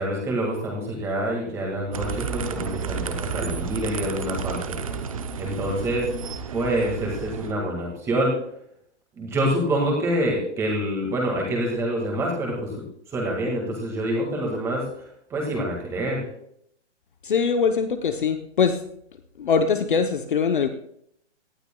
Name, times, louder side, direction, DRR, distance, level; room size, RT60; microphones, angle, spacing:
voice 1, 0.0-4.7 5.4-6.1 6.5-8.4 9.2-12.8 13.1-14.8 15.3-16.2, right 1 dB, 10° right, -1 dB, 1.9 m, -26 dB
sound 1, 1.9-7.5, right 6 dB, 30° right, 0.7 m, -31 dB
voice 2, 17.2-18.8 19.4-20.7, left 6 dB, 45° left, 8 dB, 0.8 m, -22 dB
18.0 x 12.0 x 2.3 m, 0.71 s
hypercardioid pair, 170°, 35 cm